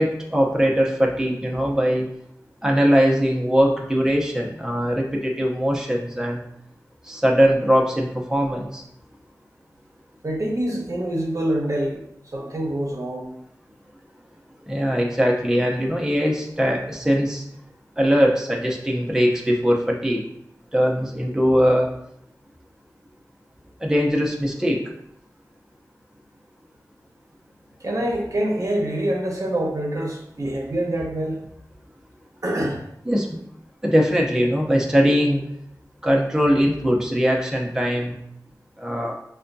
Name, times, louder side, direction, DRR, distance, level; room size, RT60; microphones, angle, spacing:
voice 1, 0.0-2.0 2.6-6.4 7.1-8.8 14.7-17.4 18.0-20.2 20.7-21.9 23.8-24.8 33.1-33.4 33.8-35.4 36.0-38.1 38.8-39.1, equal, 10° right, -1 dB, 0.7 m, -21 dB
voice 2, 10.2-12.0 12.3-13.3 27.8-31.4 32.4-32.8, right 1 dB, 55° right, 0 dB, 0.8 m, -25 dB
5.5 x 2.2 x 2.6 m, 0.75 s
wide cardioid pair, 45°, 7 cm